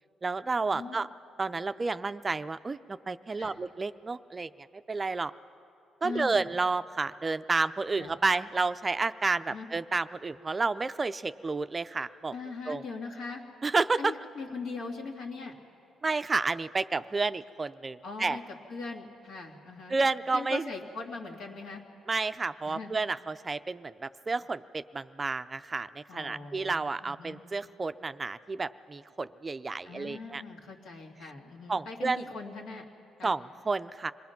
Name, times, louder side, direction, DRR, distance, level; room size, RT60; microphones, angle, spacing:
voice 1, 0.2-1.1 1.4-4.5 4.9-5.3 6.0-12.3 12.7-12.8 13.6-14.1 16.0-18.4 19.9-20.7 22.1-30.4 31.7-32.3 33.2-34.1, right 3 dB, 30° right, 12 dB, 0.4 m, -30 dB
voice 2, 6.0-6.5 8.0-8.2 9.5-9.7 12.3-13.4 14.0-15.5 18.0-20.0 20.3-21.8 22.6-22.9 26.1-27.4 29.8-32.8 33.2-33.4, left 4 dB, 75° left, 0 dB, 2.5 m, -40 dB
26.5 x 19.5 x 5.9 m, 2.6 s
cardioid pair, 90°, 0 cm